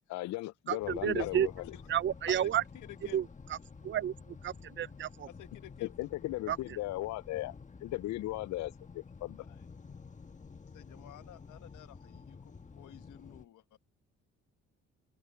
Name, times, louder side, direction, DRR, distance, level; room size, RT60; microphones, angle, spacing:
voice 1, 0.1-1.5 5.8-7.5 7.8-9.5, left 17 dB, 65° left, 0.4 m, -37 dB
voice 2, 0.7-1.5 1.9-2.6 3.1-3.2 3.8-4.1 4.4-5.3 6.5-6.6, right 10 dB, 40° right, 0.5 m, -30 dB
sound 1, 0.8-13.5, left 5 dB, 25° left, 1.3 m, -51 dB
voice 3, 2.3-3.2 5.2-5.9 9.4-9.6 10.7-13.6, left 14 dB, 85° left, 1.5 m, -50 dB
cardioid pair, 90°, 30 cm